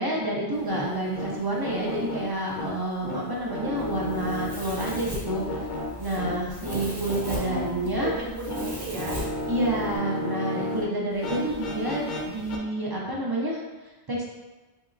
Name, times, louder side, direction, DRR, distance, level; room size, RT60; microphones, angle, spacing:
voice 1, 0.0-5.6 6.0-8.1 9.5-14.3, right 1 dB, 40° right, -3 dB, 0.3 m, -29 dB
sound 1, 0.5-10.8 11.1-12.6, left 1 dB, 55° left, 0.6 m, -34 dB
Domestic sounds home sounds, 3.8-10.0, equal, 25° right, 0.9 m, -38 dB
voice 2, 7.2-9.2, right 3 dB, 75° right, -2 dB, 0.9 m, -36 dB
3.6 x 2.9 x 2.5 m, 1.2 s
omnidirectional pair, 1.1 m